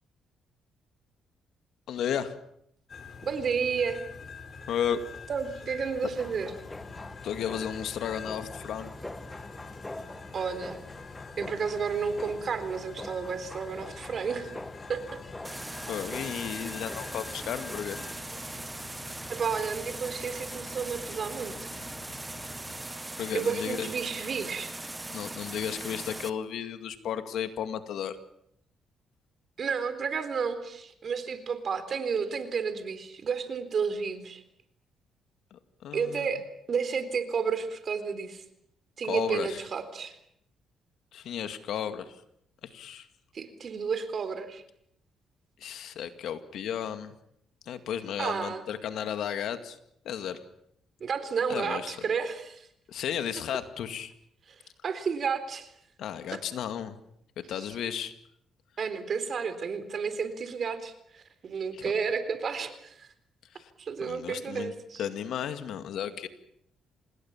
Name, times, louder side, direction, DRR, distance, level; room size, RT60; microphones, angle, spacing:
voice 1, 1.9-2.4 4.7-5.0 7.2-8.9 15.9-18.0 22.8-23.9 25.1-28.2 35.5-36.3 39.1-39.6 41.1-42.2 42.6-43.1 45.6-47.1 47.7-49.8 50.0-50.4 51.5-52.0 52.9-54.1 56.0-57.0 57.4-58.1 61.7-61.8 63.5-63.7 64.0-64.7 65.0-66.3, left 9 dB, 75° left, 9 dB, 2.1 m, -34 dB
sound 1, 2.9-22.9, left 5 dB, 45° left, 3.9 m, -46 dB
voice 2, 3.2-4.0 5.3-6.5 10.3-10.8 11.4-14.5 14.9-15.0 19.3-21.7 23.3-24.7 29.6-34.4 35.9-38.4 39.0-40.2 43.3-44.6 48.2-48.6 51.0-52.7 54.8-55.7 56.3-56.4 58.8-63.1 63.8-65.0, right 6 dB, 50° right, 11 dB, 3.8 m, -31 dB
sound 2, 6.1-18.1, left 2 dB, 15° left, 1.6 m, -44 dB
sound 3, 15.4-26.3, right 2 dB, 15° right, 1.5 m, -40 dB
27.0 x 20.0 x 7.3 m, 0.73 s
cardioid pair, 90°, 0 cm